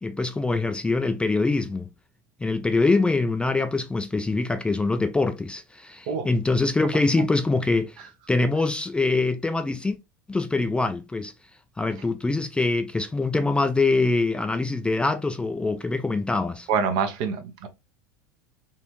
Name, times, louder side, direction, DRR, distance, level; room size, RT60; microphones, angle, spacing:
voice 1, 0.0-1.9 2.4-10.0 10.3-11.3 11.8-16.7, left 3 dB, 10° left, 0.4 m, -24 dB
voice 2, 16.7-17.7, right 6 dB, 55° right, 0.9 m, -26 dB
4.0 x 2.6 x 2.9 m
hypercardioid pair, 80°, 10 cm